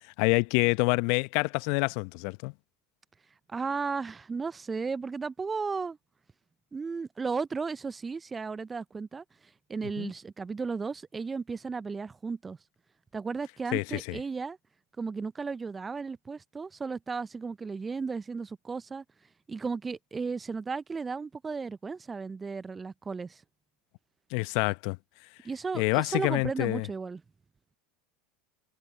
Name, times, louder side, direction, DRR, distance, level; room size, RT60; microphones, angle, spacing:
voice 1, 0.2-2.5 10.0-10.1 13.7-14.2 24.3-25.0 25.7-26.9, left 30 dB, 60° left, 0.9 m, -27 dB
voice 2, 3.5-6.0 6.7-9.2 9.7-12.6 13.1-14.6 15.0-19.0 19.5-23.4 25.4-27.2, right 4 dB, 20° right, 0.6 m, -34 dB
hypercardioid pair, 80°, 0 cm